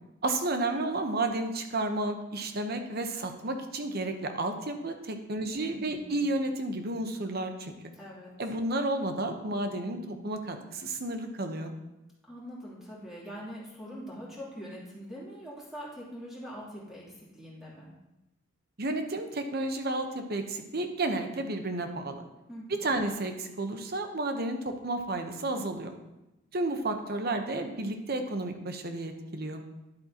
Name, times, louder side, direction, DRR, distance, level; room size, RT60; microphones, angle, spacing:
voice 1, 0.2-7.7 8.4-11.7 18.8-22.3 22.8-26.0 26.5-29.6, right 2 dB, 50° right, 6 dB, 0.9 m, -32 dB
voice 2, 5.5-6.3 7.9-8.3 12.3-17.0 17.3-17.9 22.5-23.0, equal, ahead, -8 dB, 2.9 m, -43 dB
10.5 x 8.1 x 2.9 m, 0.96 s
head